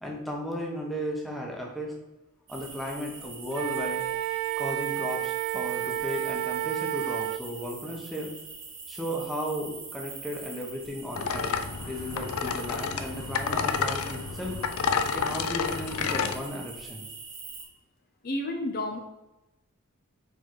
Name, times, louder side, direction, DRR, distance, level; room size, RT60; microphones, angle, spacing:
voice 1, 0.0-1.9 2.5-4.0 4.6-8.3 8.9-11.5 11.9-14.6 15.1-17.1, equal, ahead, -2 dB, 1.1 m, -35 dB
sound 1, 2.5-17.7, right 4 dB, 65° right, 2.0 m, -44 dB
Wind instrument woodwind instrument, 3.5-7.4, right 14 dB, 90° right, 0.3 m, -30 dB
sound 2, 11.2-16.4, left 6 dB, 90° left, 0.5 m, -30 dB
voice 2, 18.2-19.0, left 1 dB, 45° left, 3 dB, 0.7 m, -30 dB
4.9 x 4.8 x 4.6 m, 0.99 s
head